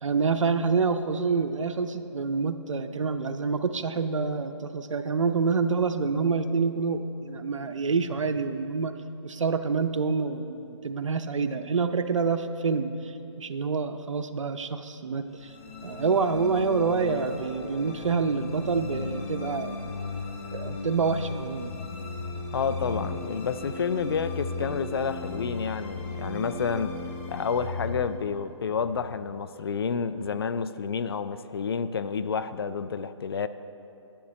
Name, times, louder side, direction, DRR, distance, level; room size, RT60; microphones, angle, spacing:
voice 1, 0.0-8.9 9.2-15.5 15.8-19.9 20.5-21.7, right 4 dB, 80° right, 9 dB, 0.6 m, -27 dB
sound 1, 15.3-29.7, left 3 dB, 25° left, 0.8 m, -37 dB
voice 2, 22.5-27.0 27.3-33.5, left 6 dB, 50° left, 13 dB, 0.4 m, -29 dB
11.5 x 10.0 x 3.2 m, 2.9 s
hypercardioid pair, 155°, 16 cm